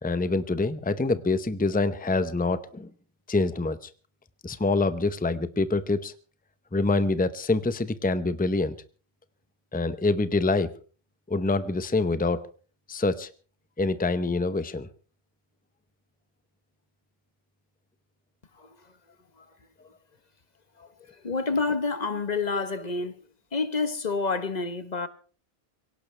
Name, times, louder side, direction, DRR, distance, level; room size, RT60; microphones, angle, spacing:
voice 1, 0.0-2.9 3.3-3.9 4.4-6.1 6.7-8.7 9.7-10.7 11.3-12.4 12.9-13.3 13.8-14.9, left 3 dB, 10° left, 0.7 m, -25 dB
voice 2, 20.8-23.2 23.5-25.1, left 4 dB, 45° left, 1.2 m, -29 dB
23.0 x 17.5 x 3.3 m
omnidirectional pair, 1.0 m